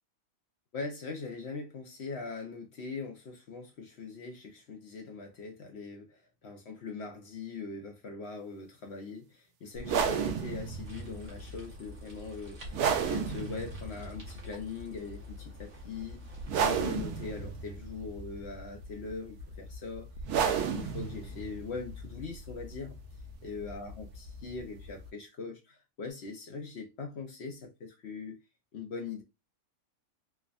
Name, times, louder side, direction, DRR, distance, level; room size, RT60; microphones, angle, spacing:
voice 1, 0.7-16.2 16.6-20.1 20.5-23.0 23.4-28.4 28.7-29.2, left 4 dB, 60° left, 0.7 m, -41 dB
sound 1, 9.8-25.1, right 6 dB, 85° right, 1.1 m, -34 dB
sound 2, 10.8-16.6, right 3 dB, 55° right, 1.3 m, -55 dB
3.3 x 2.1 x 2.3 m
omnidirectional pair, 1.6 m